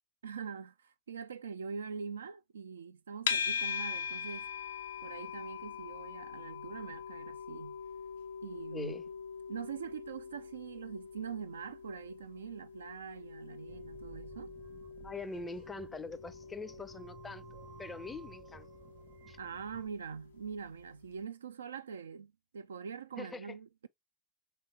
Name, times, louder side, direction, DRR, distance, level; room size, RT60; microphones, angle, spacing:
voice 1, 0.2-4.5 5.0-7.8 8.4-9.0 9.5-14.5 19.4-23.9, right 6 dB, 80° right, 0.3 m, -43 dB
sound 1, 3.3-20.5, left 7 dB, 75° left, 0.5 m, -42 dB
voice 2, 8.7-9.0 15.0-17.4 17.8-18.7 19.3-19.4 23.2-23.6, left 3 dB, 15° left, 0.5 m, -43 dB
sound 2, 13.7-19.9, right 8 dB, 55° right, 0.8 m, -55 dB
3.4 x 3.1 x 3.1 m
figure-of-eight pair, 80°, 0 cm